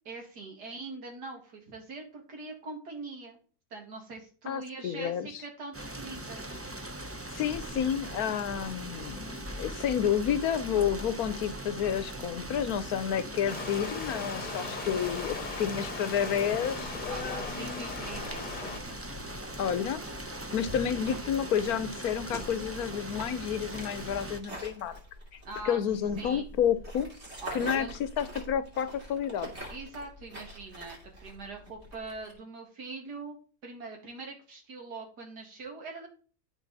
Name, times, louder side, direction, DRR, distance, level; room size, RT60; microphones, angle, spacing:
voice 1, 0.1-3.4 3.7-6.7 17.1-18.8 25.5-25.8 26.2-26.5 27.4-28.0 29.7-31.0 31.2-33.4 33.6-36.1, right 3 dB, 80° right, 1 dB, 2.7 m, -42 dB
voice 2, 4.5-5.4 7.3-17.9 19.6-20.0 20.5-25.0 25.6-27.1 27.5-27.9 28.2-29.5, left 8 dB, 70° left, 14 dB, 1.2 m, -30 dB
sound 1, 5.7-24.4, right 1 dB, 20° right, 0.4 m, -40 dB
Stream, 13.5-18.8, left 3 dB, 35° left, 1.1 m, -38 dB
sound 2, 16.8-32.3, equal, 40° right, 3.3 m, -46 dB
13.0 x 4.8 x 4.0 m, 0.39 s
omnidirectional pair, 1.7 m